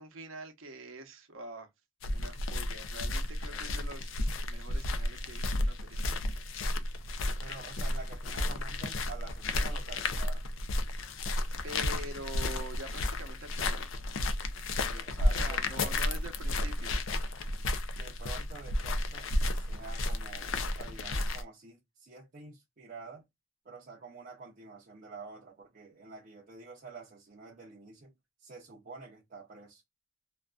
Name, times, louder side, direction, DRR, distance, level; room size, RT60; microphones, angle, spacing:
voice 1, 0.0-1.7 2.1-4.2 4.5-6.2 11.6-13.8 15.3-17.0, right 2 dB, 80° right, 0.8 m, -45 dB
sound 1, 2.0-21.4, left 1 dB, 75° left, 0.5 m, -32 dB
voice 2, 7.4-10.5 14.9-16.2 18.0-23.2 23.6-28.1 28.4-29.8, right 4 dB, 45° right, 0.6 m, -48 dB
2.5 x 2.2 x 2.2 m
head